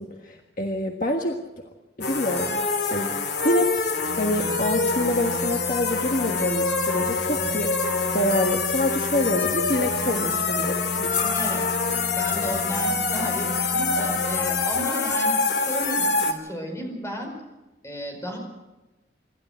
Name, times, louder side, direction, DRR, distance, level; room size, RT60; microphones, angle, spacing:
voice 1, 0.0-1.4 2.0-3.1 3.4-11.3, left 1 dB, 45° left, 2 dB, 1.6 m, -27 dB
sound 1, 2.0-16.3, left 4 dB, 60° left, 2.5 m, -25 dB
sound 2, 4.0-14.6, left 1 dB, 55° right, 6.7 m, -36 dB
voice 2, 11.3-11.6 12.1-17.3 17.8-18.4, equal, 15° left, 2 dB, 5.1 m, -33 dB
26.5 x 13.0 x 7.9 m, 1.1 s
head